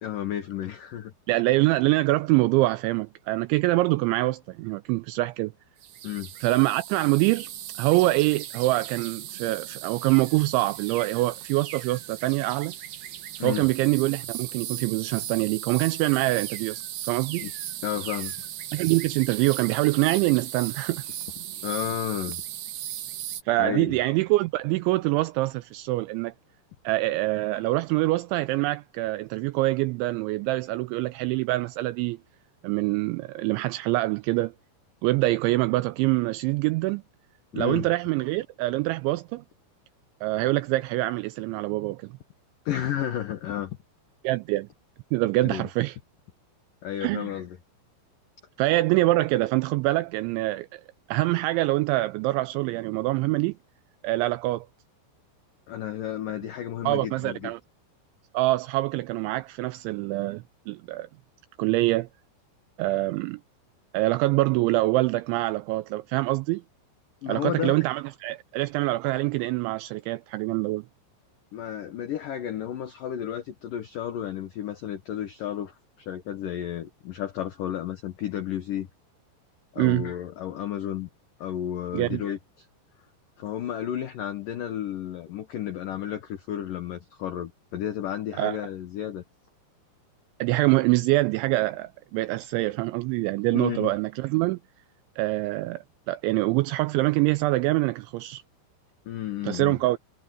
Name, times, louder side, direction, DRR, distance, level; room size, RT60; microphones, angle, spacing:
voice 1, 0.0-1.1 6.0-6.3 13.4-13.7 17.4-17.5 17.8-18.3 21.6-22.4 23.6-23.9 37.5-37.9 42.7-43.8 45.4-45.7 46.8-47.6 55.7-57.5 67.2-67.8 71.5-78.9 79.7-81.1 81.4-82.7 83.4-89.2 93.5-93.9 99.1-99.8, left 11 dB, 85° left, 1.9 m, -32 dB
voice 2, 1.3-5.5 6.4-7.5 7.8-12.7 13.4-17.5 18.7-21.0 23.5-26.3 26.8-32.2 32.6-34.5 35.0-37.0 37.5-39.4 40.2-42.1 44.2-44.7 45.1-46.0 47.0-47.3 48.6-50.8 51.1-53.6 54.0-54.7 56.8-57.6 58.3-61.1 61.6-62.1 62.8-63.4 63.9-66.6 67.3-70.8 79.8-80.1 81.9-82.2 88.4-88.6 90.4-94.6 95.2-98.4 99.4-100.0, right 19 dB, 85° right, 2.7 m, -25 dB
sound 1, 5.8-23.4, right 12 dB, 65° right, 3.1 m, -37 dB
omnidirectional pair, 5.8 m